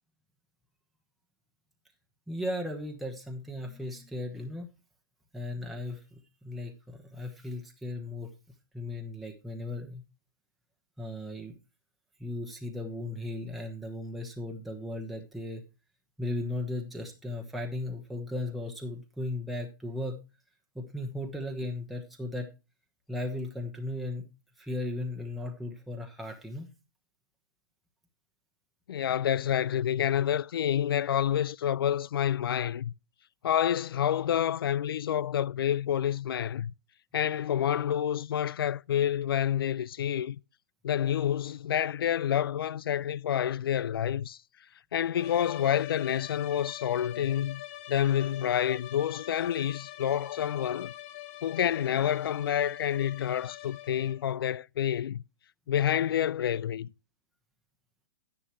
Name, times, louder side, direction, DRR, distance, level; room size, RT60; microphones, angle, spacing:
voice 1, 2.3-4.7 5.3-6.0 6.4-8.3 8.7-10.0 11.0-11.6 12.2-15.6 16.2-20.2 20.7-22.5 23.1-24.3 24.6-26.7, left 1 dB, ahead, 1.1 m, -36 dB
voice 2, 28.9-32.9 33.4-36.7 37.1-40.4 40.8-44.4 44.9-47.6 47.9-50.9 51.4-55.2 55.7-56.9, left 10 dB, 80° left, 0.4 m, -28 dB
sound 1, 45.1-54.3, left 15 dB, 35° left, 0.9 m, -44 dB
11.0 x 10.0 x 3.1 m
hypercardioid pair, 155°, 12 cm